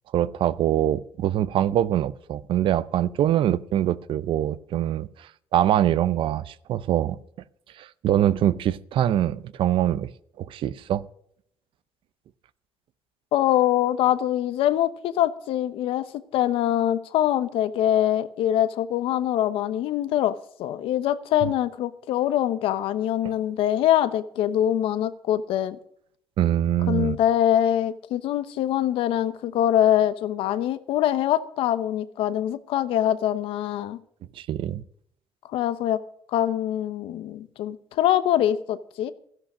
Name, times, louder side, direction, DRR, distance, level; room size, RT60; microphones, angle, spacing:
voice 1, 0.1-7.2 7.8-10.1 10.4-11.0 26.4-27.2 34.4-34.8, right 11 dB, 70° right, 0.7 m, -24 dB
voice 2, 13.3-16.0 16.3-25.8 26.9-34.0 35.5-36.0 36.3-39.1, left 11 dB, 85° left, 0.9 m, -24 dB
13.0 x 11.0 x 6.3 m
cardioid pair, 85°, 9 cm